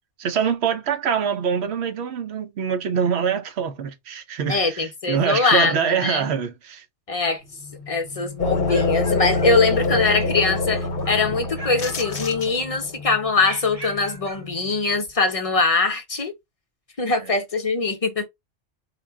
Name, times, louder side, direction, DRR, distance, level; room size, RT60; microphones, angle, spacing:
voice 1, 0.2-6.8 17.0-17.3, right 7 dB, 70° right, 1.0 m, -24 dB
voice 2, 4.5-6.3 7.1-7.4 7.9-16.3 17.0-18.3, left 3 dB, 35° left, 0.8 m, -22 dB
sound 1, 7.4-15.3, left 6 dB, 15° right, 0.8 m, -41 dB
sound 2, 8.4-12.9, left 3 dB, 55° left, 1.0 m, -25 dB
sound 3, 8.4-10.1 10.4-11.2 11.5-12.8 13.4-14.5, right 1 dB, 35° right, 1.2 m, -40 dB
4.2 x 2.2 x 3.4 m
omnidirectional pair, 1.1 m